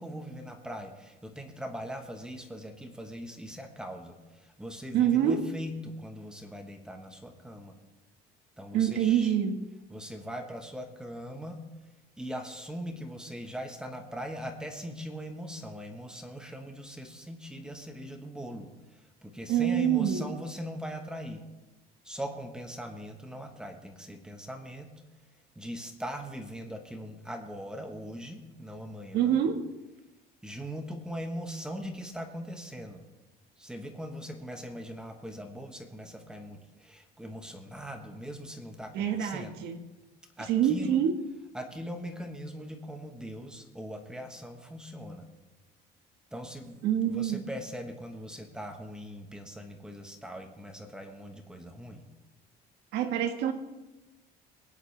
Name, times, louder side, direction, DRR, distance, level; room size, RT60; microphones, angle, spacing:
voice 1, 0.0-7.7 8.6-9.3 9.9-11.6 12.2-21.4 22.0-24.9 25.5-29.4 30.4-33.0 33.6-39.6 40.4-41.0 41.5-45.3 46.3-46.8 47.1-52.1, equal, 5° right, 4 dB, 1.1 m, -40 dB
voice 2, 4.9-5.4 8.7-9.6 19.5-20.4 29.1-29.6 38.9-39.8 40.5-41.1 46.8-47.4 52.9-53.5, right 9 dB, 70° right, 6 dB, 1.4 m, -26 dB
22.0 x 9.9 x 3.3 m, 1.1 s
cardioid pair, 160°, 18 cm